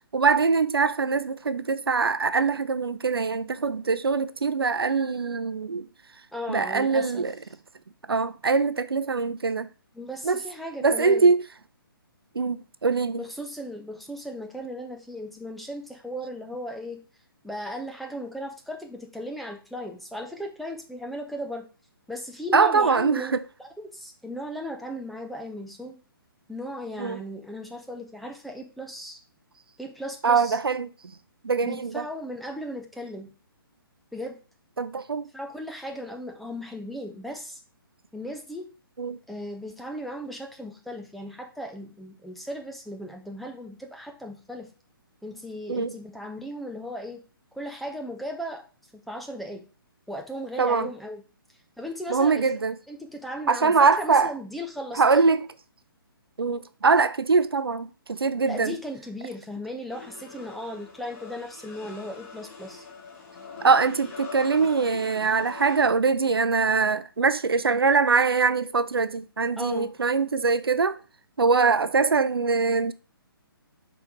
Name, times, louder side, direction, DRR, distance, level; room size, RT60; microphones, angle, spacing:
voice 1, 0.1-5.9 6.5-7.3 8.1-9.7 10.2-10.4 10.8-11.4 12.3-13.2 22.5-23.4 27.0-27.2 30.2-30.9 31.4-32.1 34.8-35.3 39.0-39.2 45.7-46.0 50.6-50.9 52.1-52.8 53.5-54.3 54.9-55.5 56.4-58.8 63.6-71.0 71.4-72.9, right 4 dB, 80° right, 0.5 m, -23 dB
voice 2, 6.3-7.2 9.9-11.3 13.1-17.0 17.4-21.7 22.1-23.3 23.6-26.0 26.5-29.2 29.8-30.6 31.6-33.3 34.1-34.4 35.3-37.6 38.1-38.7 39.3-44.7 45.2-47.2 47.5-48.6 49.1-49.7 50.1-51.2 51.8-52.5 52.9-55.2 58.4-62.9 69.6-69.9, equal, ahead, 0.5 m, -36 dB
sound 1, 59.9-65.9, left 4 dB, 40° left, 1.7 m, -43 dB
5.5 x 4.0 x 4.5 m
figure-of-eight pair, 135°, 12 cm